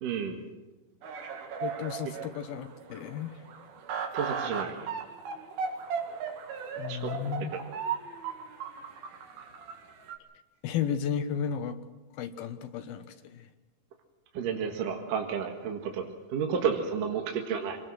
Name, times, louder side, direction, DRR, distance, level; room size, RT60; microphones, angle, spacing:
voice 1, 0.0-0.4 4.1-4.9 6.9-7.2 14.3-17.8, right 7 dB, 65° right, 2 dB, 3.2 m, -31 dB
sound 1, 1.0-10.2, right 6 dB, 85° right, 4.1 m, -37 dB
voice 2, 1.6-3.4 6.8-7.5 10.6-11.8 12.2-13.5, left 8 dB, 80° left, 8 dB, 3.1 m, -33 dB
26.5 x 19.0 x 6.3 m, 1.1 s
omnidirectional pair, 4.2 m